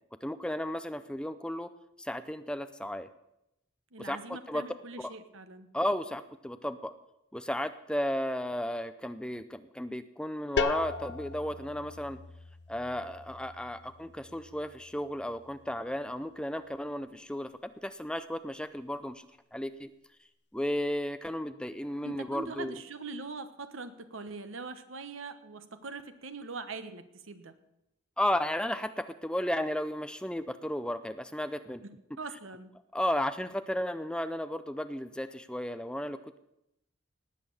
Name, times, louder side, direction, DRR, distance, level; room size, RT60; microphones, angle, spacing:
voice 1, 0.2-1.7 2.0-3.1 4.0-4.7 5.0-5.1 5.7-6.9 7.3-12.2 12.7-19.2 19.5-19.9 20.5-22.8 28.2-31.8 32.9-36.4, left 1 dB, 5° left, 11 dB, 0.5 m, -34 dB
voice 2, 3.9-5.7 22.0-27.5 31.8-32.7, right 3 dB, 85° right, 10 dB, 1.2 m, -42 dB
sound 1, 10.6-16.1, left 5 dB, 55° left, 0.7 m, -39 dB
18.5 x 8.5 x 7.1 m, 0.87 s
head